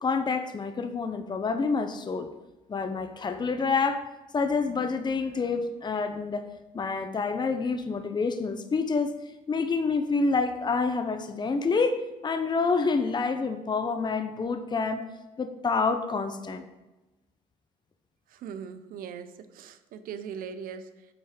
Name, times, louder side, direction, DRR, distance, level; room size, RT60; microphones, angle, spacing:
voice 1, 0.0-2.3 2.7-4.1 4.3-6.5 6.7-9.2 9.5-15.1 15.4-16.6, left 4 dB, 30° left, 8 dB, 0.8 m, -27 dB
voice 2, 18.3-21.1, right 7 dB, 70° right, 11 dB, 0.8 m, -40 dB
8.4 x 5.5 x 5.1 m, 1.0 s
supercardioid pair, 80°, 15 cm